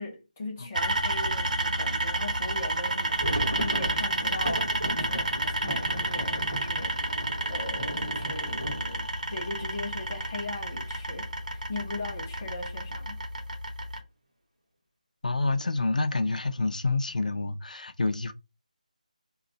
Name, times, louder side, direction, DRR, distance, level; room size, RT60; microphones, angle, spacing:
voice 1, 0.0-6.9 7.5-13.2, left 2 dB, 10° left, 0.4 m, -39 dB
sound 1, 0.7-14.0, right 2 dB, 70° right, 1.1 m, -30 dB
sound 2, 2.8-10.6 10.9-11.0 11.2-11.5 12.0-12.5, equal, 35° right, 1.9 m, -36 dB
voice 2, 15.2-18.3, left 3 dB, 70° left, 0.5 m, -28 dB
3.8 x 2.3 x 4.0 m
figure-of-eight pair, 180°, 4 cm